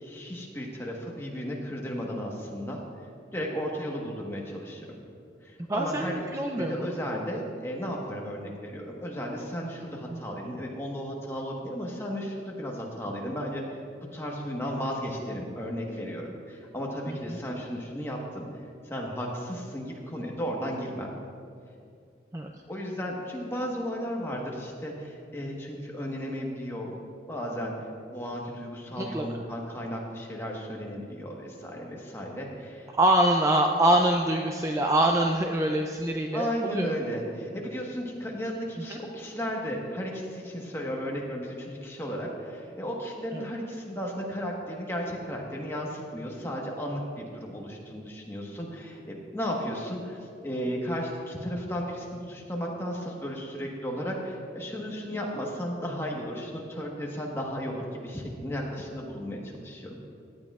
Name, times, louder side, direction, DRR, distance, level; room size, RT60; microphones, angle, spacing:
voice 1, 0.0-2.8 3.3-5.0 5.4-6.2 6.6-13.6 14.1-18.5 18.8-21.2 22.7-27.0 27.3-27.7 28.1-32.9 36.3-60.0, equal, 15° left, -2 dB, 1.3 m, -34 dB
voice 2, 5.7-6.9 10.1-10.2 17.1-17.4 22.3-22.5 29.0-29.2 32.9-36.9 38.9-39.0 43.3-43.4, right 1 dB, 15° right, 2 dB, 0.4 m, -25 dB
16.5 x 10.5 x 2.4 m, 2.4 s
head